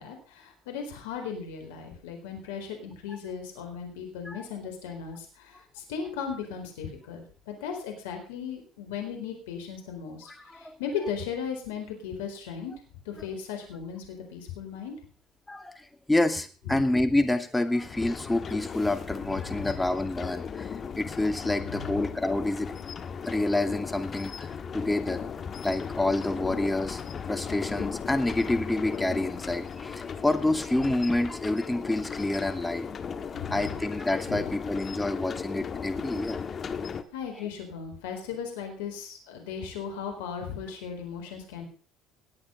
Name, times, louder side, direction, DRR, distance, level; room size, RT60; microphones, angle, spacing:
voice 1, 0.0-12.7 13.0-14.0 14.3-14.9 16.7-16.8 19.4-19.8 21.6-22.0 26.5-26.6 33.3-33.8 34.3-34.5 37.1-41.7, left 7 dB, 85° left, 4 dB, 4.2 m, -37 dB
voice 2, 10.3-10.8 15.5-22.8 23.2-24.5 24.7-25.2 25.6-27.0 27.3-32.9 33.5-36.4, left 2 dB, 10° left, 7 dB, 2.5 m, -28 dB
sound 1, 17.8-37.0, left 6 dB, 40° left, 1.5 m, -36 dB
20.0 x 8.7 x 5.3 m, 0.39 s
hypercardioid pair, 65°, 0 cm